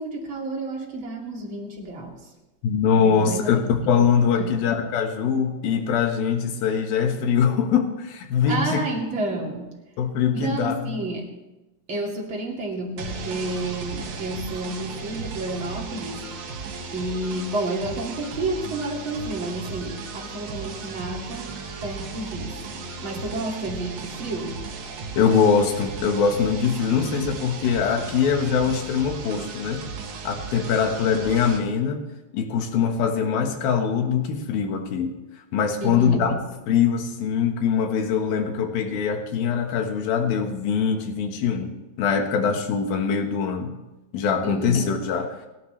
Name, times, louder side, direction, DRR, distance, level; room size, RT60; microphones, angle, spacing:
voice 1, 0.0-2.3 2.9-3.6 4.4-4.5 8.5-9.7 10.3-11.3 11.9-16.6 16.9-24.6 35.8-36.3 44.4-44.9, right 2 dB, 35° right, -1 dB, 2.8 m, -31 dB
voice 2, 2.6-8.8 10.0-10.9 25.2-29.8 30.2-32.0 32.3-35.1 35.5-36.4 36.7-43.7 44.1-45.4, left 6 dB, 65° left, 5 dB, 3.1 m, -23 dB
sound 1, 13.0-31.6, right 4 dB, 55° right, 2.5 m, -36 dB
29.5 x 11.5 x 3.3 m, 1.0 s
omnidirectional pair, 4.8 m